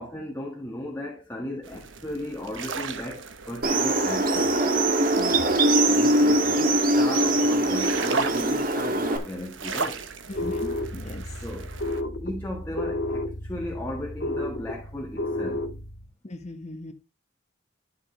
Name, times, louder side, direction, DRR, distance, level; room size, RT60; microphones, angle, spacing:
voice 1, 0.0-4.6 5.8-10.0 11.4-11.7 12.2-15.7, left 1 dB, 10° left, 1.5 m, -35 dB
sound 1, 1.6-12.0, right 4 dB, 75° right, 1.1 m, -37 dB
sound 2, 3.6-9.2, right 1 dB, 45° right, 1.5 m, -22 dB
voice 2, 5.2-5.7 10.3-11.2 16.2-16.9, left 1 dB, 35° left, 1.2 m, -39 dB
sound 3, 10.4-16.1, left 1 dB, 55° left, 1.7 m, -32 dB
11.5 x 6.0 x 3.3 m
head